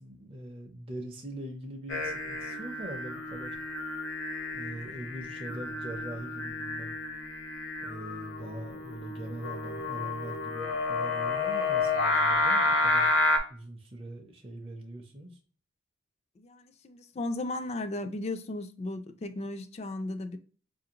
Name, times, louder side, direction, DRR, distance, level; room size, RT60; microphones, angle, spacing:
voice 1, 0.0-3.6 4.5-7.0 7.8-13.1 13.5-15.4, right 1 dB, 30° right, 0.5 m, -42 dB
Singing, 1.9-13.4, left 3 dB, 70° left, 0.8 m, -30 dB
voice 2, 16.4-20.4, left 2 dB, 30° left, 0.3 m, -35 dB
4.8 x 2.5 x 2.8 m
head